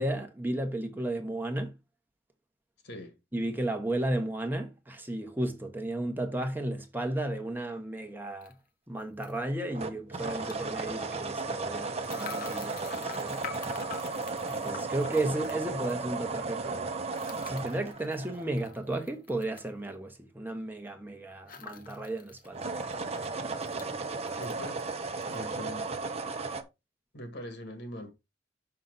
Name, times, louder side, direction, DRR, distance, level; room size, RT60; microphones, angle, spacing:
voice 1, 0.0-1.7 3.3-8.5 8.9-13.4 14.5-16.9 17.3-22.6, right 1 dB, 10° right, 1.1 m, -34 dB
voice 2, 2.8-3.2 24.4-24.9 25.3-25.9 27.1-28.1, equal, 65° left, 2.0 m, -41 dB
sound 1, 8.4-8.5 9.2-9.4 10.3-10.6 12.0-16.0 17.1-19.7 21.5-22.5 22.8-22.9 23.2-23.9 24.3-24.9 25.2-25.4, left 6 dB, 50° left, 1.1 m, -45 dB
sound 2, 9.7-19.0 22.4-26.6, right 3 dB, 35° right, 0.9 m, -35 dB
6.4 x 5.8 x 4.0 m
head